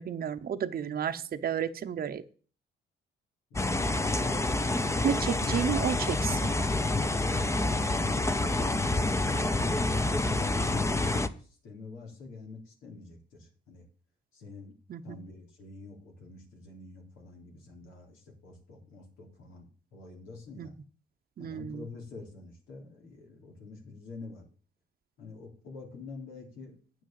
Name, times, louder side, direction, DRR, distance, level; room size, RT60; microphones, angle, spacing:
voice 1, 0.0-2.2 5.0-6.5 14.9-15.2 20.6-20.7 21.4-21.9, right 8 dB, 50° right, 8 dB, 0.8 m, -32 dB
sound 1, 3.6-11.3, left 2 dB, 15° left, 0.8 m, -28 dB
voice 2, 7.2-7.5 9.6-13.9 14.3-14.7 15.0-20.7 21.4-24.5 25.2-26.8, left 3 dB, 85° left, 1 dB, 3.7 m, -47 dB
9.0 x 6.4 x 7.7 m, 0.40 s
cardioid pair, 90°, 20 cm